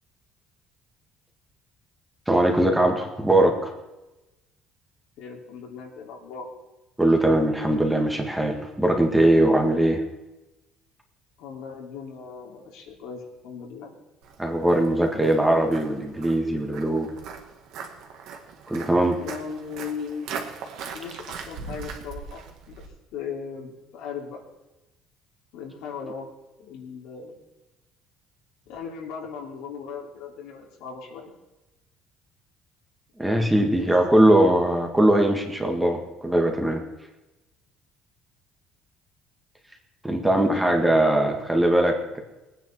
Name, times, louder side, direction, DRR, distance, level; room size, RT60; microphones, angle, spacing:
voice 1, 2.3-3.7 7.0-10.0 14.4-17.1 18.7-19.2 33.2-36.8 40.0-42.2, right 1 dB, 5° right, 3 dB, 1.8 m, -21 dB
voice 2, 5.2-6.5 11.4-13.9 19.2-20.3 20.9-22.8 23.1-24.4 25.5-26.3 26.6-27.4 28.6-31.3 33.8-33.9 34.2-34.3 40.2-41.0, left 6 dB, 85° left, 0 dB, 3.4 m, -38 dB
Walk footsteps, 14.2-22.9, right 6 dB, 70° right, 2.1 m, -40 dB
21.0 x 9.4 x 4.7 m, 1.0 s
cardioid pair, 140°, 0 cm